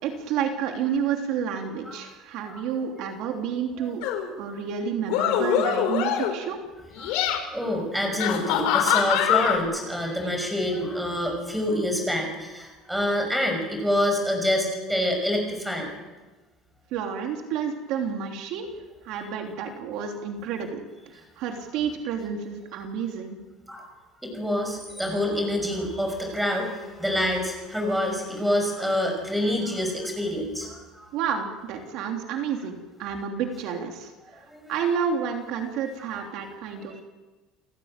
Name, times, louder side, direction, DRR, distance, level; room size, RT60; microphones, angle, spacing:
voice 1, 0.0-4.1 4.4-6.6 16.9-18.7 19.0-20.8 21.1-23.4 31.1-37.0, right 7 dB, 55° right, 3 dB, 3.2 m, -30 dB
sound 1, 4.0-4.3 5.0-6.4 6.9-7.4 8.2-9.6, left 10 dB, 80° left, 5.7 m, -23 dB
voice 2, 7.5-15.9 23.7-23.8 24.2-31.1 34.5-34.7, left 1 dB, 5° right, 3 dB, 6.0 m, -27 dB
29.5 x 16.5 x 9.0 m, 1.2 s
cardioid pair, 175°, 0 cm